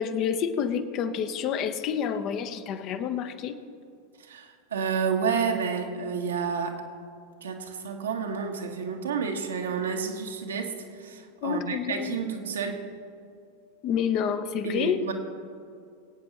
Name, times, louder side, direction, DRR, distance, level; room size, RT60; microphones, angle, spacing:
voice 1, 0.0-3.6 11.4-12.2 13.8-15.1, left 7 dB, 35° left, 10 dB, 0.8 m, -28 dB
voice 2, 4.3-6.8 7.4-12.8 14.6-15.1, right 6 dB, 65° right, 3 dB, 1.2 m, -30 dB
23.5 x 8.8 x 3.0 m, 2.4 s
figure-of-eight pair, 90°, 0 cm